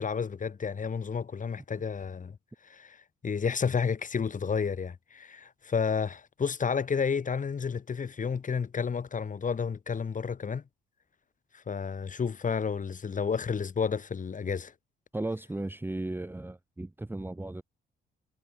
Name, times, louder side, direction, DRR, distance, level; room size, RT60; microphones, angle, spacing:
voice 1, 0.0-2.4 2.7-3.0 3.2-10.6 11.5-14.7, left 6 dB, 40° left, 4.1 m, -31 dB
voice 2, 15.1-17.6, right 2 dB, 10° right, 1.4 m, -35 dB
cardioid pair, 90°, 20 cm